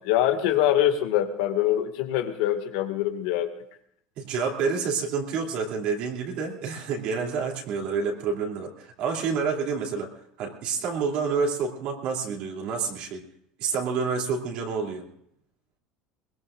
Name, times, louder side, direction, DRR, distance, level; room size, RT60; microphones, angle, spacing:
voice 1, 0.0-3.5, left 12 dB, 75° left, 6 dB, 2.0 m, -24 dB
voice 2, 4.2-10.1 10.4-13.2 13.6-15.0, right 5 dB, 50° right, 0 dB, 3.0 m, -28 dB
22.0 x 21.5 x 2.6 m, 0.69 s
cardioid pair, 155°, 2 cm